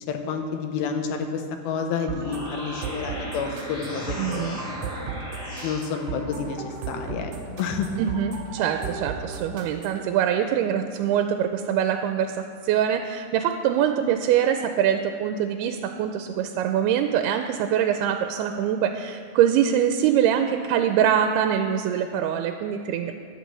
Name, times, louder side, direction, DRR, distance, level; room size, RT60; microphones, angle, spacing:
voice 1, 0.1-4.8 5.6-7.3 7.6-7.9, left 6 dB, 80° left, 5 dB, 2.8 m, -30 dB
sound 1, 2.0-5.8, left 1 dB, 30° left, 2.7 m, -37 dB
sound 2, 2.1-10.1, right 4 dB, 55° right, 2.9 m, -36 dB
voice 2, 4.2-4.6 8.0-12.4 12.6-23.1, right 9 dB, 85° right, 6 dB, 2.5 m, -23 dB
11.0 x 8.5 x 7.6 m, 2.1 s
omnidirectional pair, 4.5 m